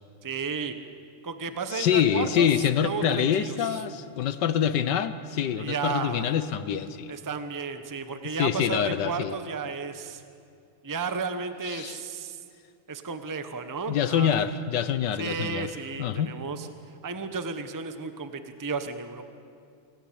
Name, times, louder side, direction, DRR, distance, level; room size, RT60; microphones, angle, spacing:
voice 1, 0.2-0.7 1.2-2.5 2.8-3.8 5.6-6.3 7.1-10.2 10.8-12.4 12.9-14.3 15.2-16.7 17.0-19.2, right 5 dB, 20° right, 9 dB, 0.5 m, -33 dB
voice 2, 1.7-7.2 8.4-9.3 11.7-12.0 13.9-15.7 16.0-16.3, left 9 dB, 65° left, 13 dB, 1.3 m, -26 dB
25.5 x 16.5 x 8.7 m, 2.4 s
omnidirectional pair, 2.3 m